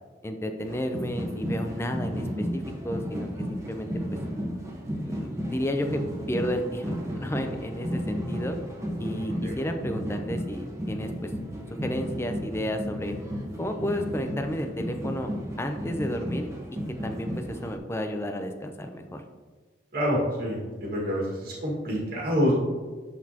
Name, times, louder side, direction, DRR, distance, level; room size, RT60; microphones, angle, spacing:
voice 1, 0.2-3.9 5.0-6.0 6.3-8.6 9.0-11.3 11.8-13.2 13.6-15.3 15.6-16.5 17.0-19.2, equal, 15° left, 5 dB, 0.5 m, -32 dB
sound 1, 0.6-17.8, equal, 15° right, 1.1 m, -33 dB
voice 2, 19.9-22.5, equal, 60° right, -4 dB, 1.8 m, -27 dB
11.0 x 4.1 x 2.8 m, 1.4 s
head